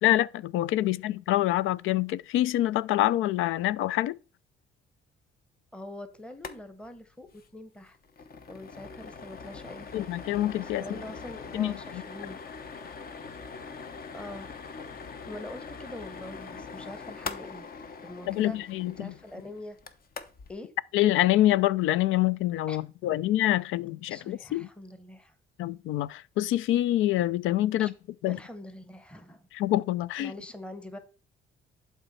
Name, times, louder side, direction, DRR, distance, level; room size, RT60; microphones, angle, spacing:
voice 1, 0.0-4.2 9.9-10.8 11.5-11.7 18.3-19.1 20.9-24.7 25.6-27.9 28.2-28.4 29.5-30.3, left 14 dB, 85° left, 0.4 m, -26 dB
voice 2, 5.7-8.0 8.5-10.1 10.6-12.4 14.1-14.5 15.3-19.8 20.5-20.7 22.7-22.8 24.1-25.3 27.8-27.9 28.2-29.5 30.2-31.0, left 1 dB, 5° left, 0.9 m, -44 dB
sound 1, 6.3-6.6 6.8-6.9 7.3-7.5 7.8-20.5, left 5 dB, 50° left, 1.0 m, -42 dB
11.0 x 4.4 x 4.1 m
cardioid pair, 90°, 20 cm